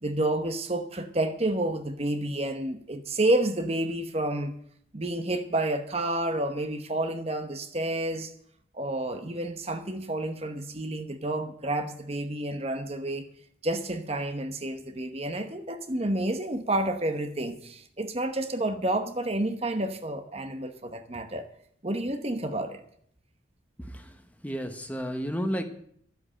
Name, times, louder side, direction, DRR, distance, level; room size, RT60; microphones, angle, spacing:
voice 1, 0.0-4.5 4.9-8.3 8.7-13.3 13.6-21.5 21.8-22.8, right 1 dB, 30° right, 8 dB, 1.0 m, -30 dB
voice 2, 23.8-24.2 24.4-25.6, equal, 10° left, 6 dB, 1.0 m, -32 dB
12.5 x 8.1 x 8.7 m, 0.66 s
head